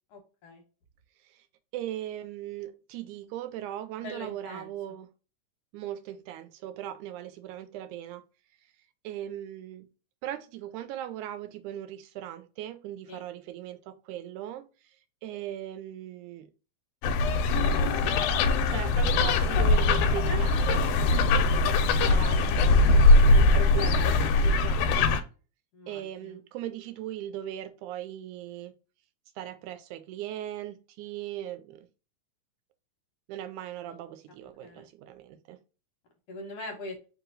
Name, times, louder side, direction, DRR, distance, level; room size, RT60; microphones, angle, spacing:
voice 1, 0.1-0.6 4.0-4.7 13.1-13.2 20.2-20.4 25.7-26.4 34.4-34.9 36.3-37.0, left 2 dB, 60° left, 2.0 m, -42 dB
voice 2, 1.7-5.1 5.7-8.2 9.0-9.9 10.2-15.0 15.2-16.5 17.6-18.2 18.7-20.8 22.0-25.1 25.9-28.7 29.4-31.9 33.3-35.6, right 12 dB, 80° right, 2.0 m, -39 dB
sound 1, 17.0-25.2, left 2 dB, 80° left, 2.1 m, -21 dB
4.6 x 2.9 x 3.8 m
omnidirectional pair, 3.6 m